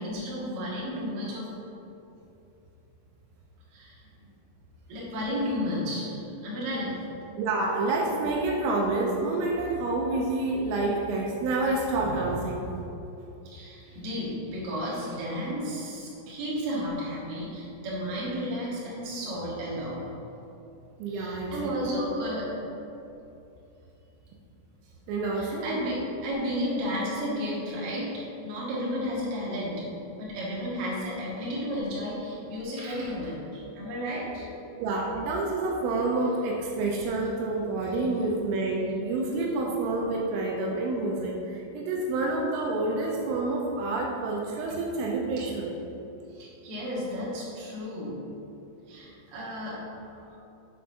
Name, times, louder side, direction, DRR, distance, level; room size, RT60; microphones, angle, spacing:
voice 1, 0.0-1.5 3.7-4.0 4.9-6.9 13.4-20.0 21.1-22.5 25.3-29.8 30.2-34.5 45.4-45.5 46.3-48.1 48.9-50.4, equal, 55° right, -7 dB, 2.8 m, -33 dB
voice 2, 7.4-12.7 21.0-21.9 25.1-25.7 34.8-45.7, right 2 dB, 85° right, -1 dB, 3.3 m, -28 dB
8.3 x 4.3 x 5.7 m, 2.8 s
omnidirectional pair, 6.0 m